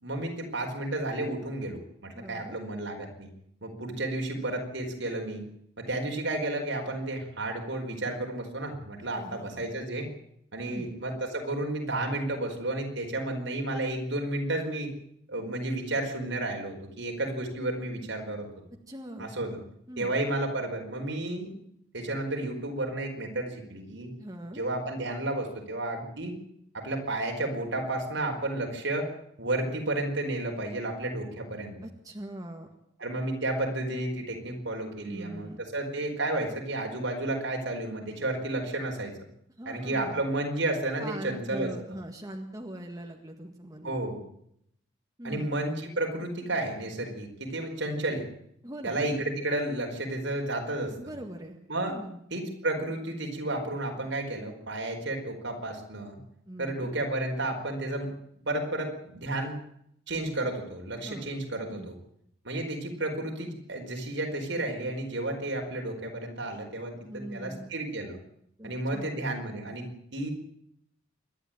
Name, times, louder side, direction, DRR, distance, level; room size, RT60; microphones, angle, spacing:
voice 1, 0.0-3.3 3.6-5.4 5.8-10.1 10.5-14.9 15.3-18.5 19.2-19.6 20.0-21.5 21.9-24.1 24.5-26.3 26.7-29.1 29.4-31.8 33.0-39.2 39.7-41.7 43.8-44.2 45.2-48.2 48.8-50.9 51.7-52.0 52.3-56.2 56.6-58.1 58.5-59.6 60.1-61.9 62.4-68.2 68.6-70.3, right 2 dB, 70° right, 2 dB, 4.7 m, -32 dB
voice 2, 2.1-2.6 9.1-9.7 10.6-10.9 18.9-19.3 19.9-20.1 24.2-24.7 31.8-32.7 35.1-35.6 39.6-40.2 41.0-44.0 45.2-45.6 48.6-49.0 51.0-51.6 51.9-52.2 56.5-57.0 61.0-61.3 61.7-61.9 67.0-67.7 68.6-69.2, right 1 dB, 20° right, 2 dB, 1.8 m, -41 dB
26.5 x 11.5 x 9.0 m, 0.74 s
head